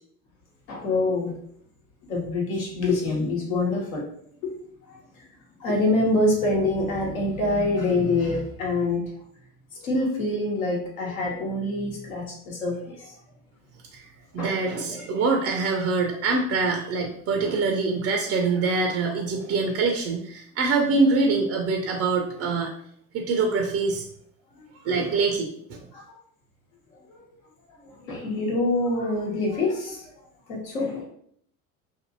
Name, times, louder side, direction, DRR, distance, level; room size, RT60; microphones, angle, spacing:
voice 1, 0.7-1.3 2.1-4.0 4.4-4.6 4.9-5.0 5.6-9.0 9.8-13.1 14.3-14.5 25.9-26.0 27.8-30.0 30.5-31.1, left 2 dB, 70° left, -2 dB, 1.1 m, -25 dB
voice 2, 14.3-22.7 23.1-24.0 24.8-25.8, right 4 dB, 35° right, 2 dB, 0.4 m, -24 dB
2.6 x 2.6 x 2.6 m, 0.65 s
figure-of-eight pair, 65°, 42 cm